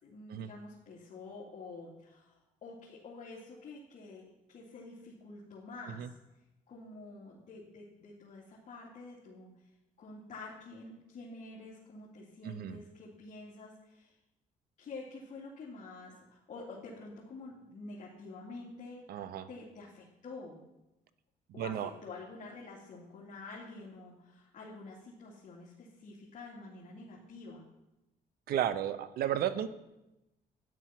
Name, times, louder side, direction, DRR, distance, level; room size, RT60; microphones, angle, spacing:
voice 1, 0.0-4.2 4.5-6.1 6.7-9.5 10.0-14.1 14.8-19.0 19.5-20.6 21.5-27.6, left 3 dB, 50° left, -5 dB, 2.7 m, -48 dB
voice 2, 12.4-12.8 19.1-19.5 21.6-21.9 28.5-29.7, right 10 dB, 80° right, 13 dB, 0.8 m, -33 dB
12.5 x 10.5 x 5.9 m, 0.96 s
cardioid pair, 120°, 16 cm